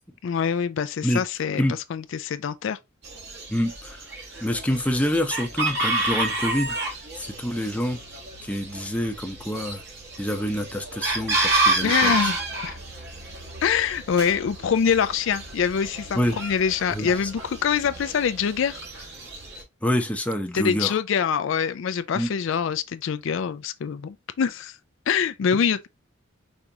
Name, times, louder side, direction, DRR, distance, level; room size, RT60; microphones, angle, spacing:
voice 1, 0.2-2.8 11.8-12.4 12.6-12.8 13.6-18.8 20.5-24.8 25.1-25.9, left 7 dB, 65° left, 0.4 m, -25 dB
Chicken rooster, 3.0-19.6, right 2 dB, 60° right, 1.8 m, -30 dB
voice 2, 3.5-4.0 4.4-6.8 7.2-8.0 8.4-9.8 10.2-12.2 16.2-16.4 16.9-17.3 19.8-21.0 22.1-22.3, equal, 5° left, 0.7 m, -26 dB
5.3 x 3.6 x 2.8 m
head